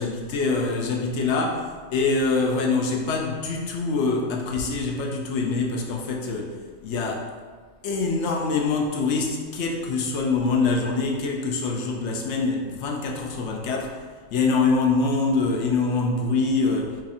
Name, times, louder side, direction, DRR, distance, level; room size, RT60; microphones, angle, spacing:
voice 1, 0.0-6.5 6.8-7.3 7.8-14.0 14.3-16.9, left 4 dB, 70° left, 1 dB, 0.9 m, -24 dB
4.2 x 2.4 x 4.1 m, 1.5 s
omnidirectional pair, 1.3 m